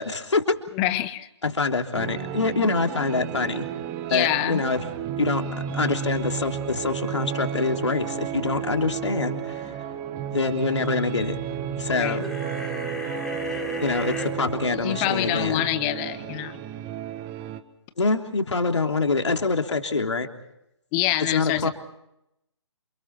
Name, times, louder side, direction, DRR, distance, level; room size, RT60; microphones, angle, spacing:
voice 1, 0.0-0.6 1.4-3.7 4.1-4.8 5.2-5.5 5.7-9.7 10.3-11.4 11.8-12.2 13.8-15.7 18.0-20.3 21.2-21.7, left 3 dB, 75° left, 4 dB, 3.3 m, -25 dB
voice 2, 0.7-1.3 4.1-4.6 11.9-12.2 14.8-16.6 20.9-21.7, left 14 dB, 20° left, 12 dB, 1.5 m, -26 dB
sound 1, 1.9-17.6, right 9 dB, 20° right, 1.5 m, -32 dB
sound 2, 12.2-14.3, left 2 dB, 5° left, 3.5 m, -33 dB
29.0 x 28.0 x 4.4 m, 0.84 s
figure-of-eight pair, 140°, 15 cm